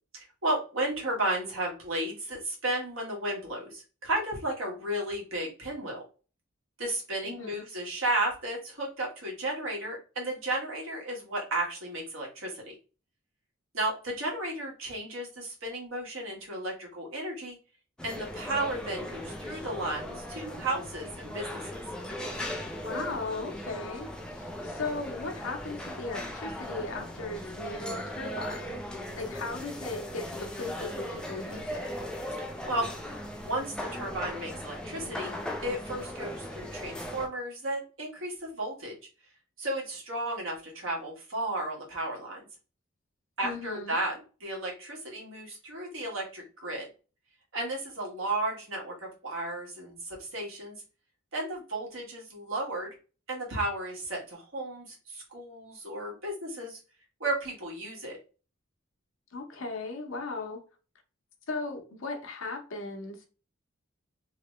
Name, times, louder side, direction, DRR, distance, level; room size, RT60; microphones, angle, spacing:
voice 1, 0.1-6.0 6.8-12.7 13.7-17.6 18.0-21.8 32.6-32.9 33.4-35.3 35.6-38.9 39.6-42.4 43.4-46.9 47.5-50.8 51.3-52.9 53.3-56.8 57.2-58.2, right 1 dB, 75° right, 1.6 m, -33 dB
voice 2, 7.2-7.6 20.3-20.4 22.8-31.9 43.4-43.9 59.3-60.6 61.5-63.3, left 3 dB, 70° left, 0.8 m, -37 dB
sound 1, 18.0-37.3, equal, 5° left, 0.4 m, -38 dB
3.1 x 2.9 x 3.1 m
head